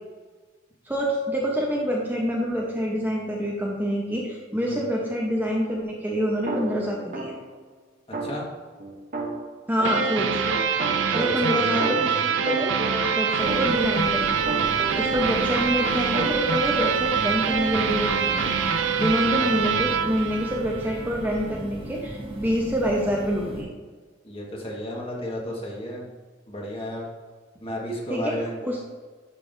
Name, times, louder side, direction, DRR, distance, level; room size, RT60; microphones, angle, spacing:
voice 1, 0.9-7.4 9.7-10.3 11.1-12.7 13.1-14.7 15.0-18.5 19.0-23.7 28.1-28.3 28.6-28.9, equal, 10° right, -2 dB, 0.9 m, -26 dB
sound 1, 6.5-7.6 8.1-10.2 10.5-15.5 15.8-16.4, right 2 dB, 50° right, 0.9 m, -34 dB
sound 2, 9.8-21.1, right 6 dB, 80° right, 0.6 m, -25 dB
voice 2, 11.1-11.9 24.2-26.1 26.5-27.1 27.6-28.6, left 1 dB, 30° left, -3 dB, 1.7 m, -33 dB
sound 3, 13.4-23.6, right 1 dB, 30° right, 1.7 m, -38 dB
11.0 x 5.4 x 2.7 m, 1.4 s
head